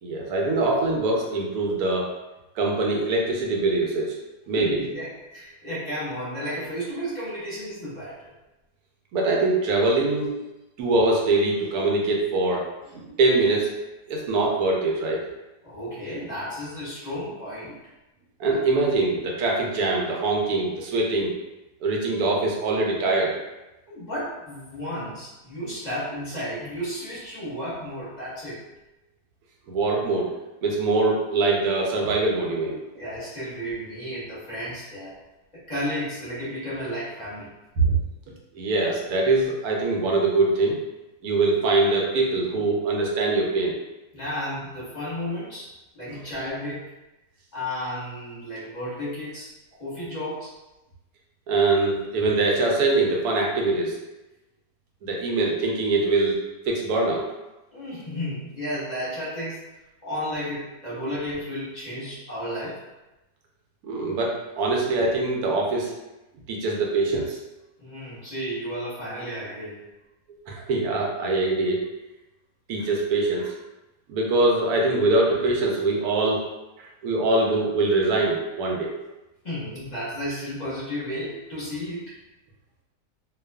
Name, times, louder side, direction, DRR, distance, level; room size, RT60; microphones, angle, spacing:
voice 1, 0.0-2.1 2.6-4.2 4.5-4.8 9.1-10.3 10.8-12.6 12.9-13.7 14.1-15.2 18.4-21.3 21.8-23.4 29.7-30.3 30.6-32.8 37.8-38.0 38.5-40.8 41.2-43.8 51.5-54.0 55.0-57.3 63.8-65.9 66.5-67.4 70.5-71.9 72.7-73.5 74.1-76.4 76.8-78.9, right 2 dB, 80° right, -1 dB, 1.1 m, -23 dB
voice 2, 4.5-8.3 15.6-17.8 23.9-28.6 32.9-35.1 35.5-37.5 44.1-45.7 45.9-46.9 47.5-49.5 49.8-50.5 57.7-59.7 60.0-62.8 67.8-69.8 79.4-82.1, equal, 30° left, -11 dB, 1.0 m, -33 dB
2.6 x 2.3 x 2.2 m, 1.0 s
omnidirectional pair, 1.6 m